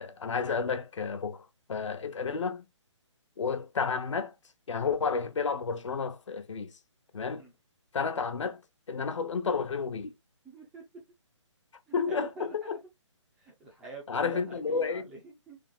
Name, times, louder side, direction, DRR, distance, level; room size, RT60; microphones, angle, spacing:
voice 1, 0.0-2.7 3.4-4.3 4.7-6.7 7.1-7.4 7.9-8.6 8.9-10.1 11.9-12.8 14.1-15.1, left 5 dB, 70° left, 0.9 m, -31 dB
voice 2, 10.4-11.0 11.9-12.8 13.4-15.6, right 4 dB, 5° right, 0.3 m, -47 dB
3.6 x 2.6 x 3.7 m
hypercardioid pair, 160°, 16 cm